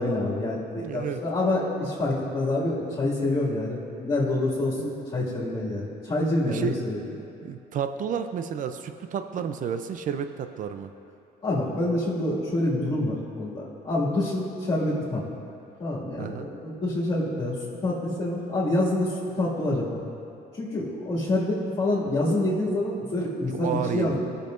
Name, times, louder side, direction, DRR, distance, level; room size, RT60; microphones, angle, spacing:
voice 1, 0.0-7.0 11.4-15.2 15.8-17.6 17.8-20.0 20.6-24.2, left 2 dB, 35° left, -11 dB, 2.2 m, -27 dB
voice 2, 0.8-1.2 4.7-5.0 6.4-6.8 7.1-10.9 16.2-16.5 23.5-24.2, right 7 dB, 50° right, 8 dB, 0.6 m, -31 dB
17.5 x 6.8 x 2.6 m, 2.6 s
cardioid pair, 110°, 17 cm